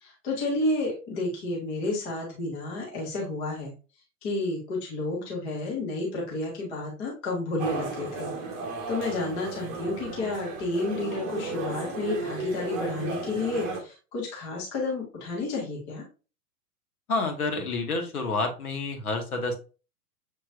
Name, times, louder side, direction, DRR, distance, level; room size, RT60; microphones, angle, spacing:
voice 1, 0.0-3.7 4.2-8.3 8.9-16.0, left 2 dB, 10° left, -3 dB, 0.3 m, -31 dB
Bar Ambience - Night - Busy, 7.6-13.8, right 3 dB, 25° right, 0.8 m, -34 dB
voice 2, 17.1-19.6, left 3 dB, 70° left, 4 dB, 1.2 m, -29 dB
6.5 x 3.0 x 2.4 m, 0.33 s
figure-of-eight pair, 100°, 47 cm